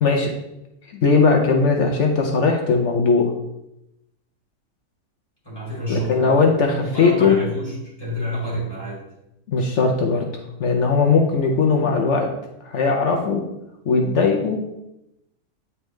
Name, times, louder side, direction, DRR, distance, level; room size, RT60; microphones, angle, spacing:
voice 1, 0.0-0.3 1.0-3.3 5.9-7.4 9.5-10.3 10.6-12.3 12.6-13.4 13.9-14.8, left 4 dB, 60° left, 2 dB, 0.9 m, -19 dB
voice 2, 5.4-6.4 6.8-9.0, equal, 15° left, -5 dB, 2.2 m, -29 dB
9.5 x 3.4 x 3.1 m, 0.86 s
omnidirectional pair, 1.6 m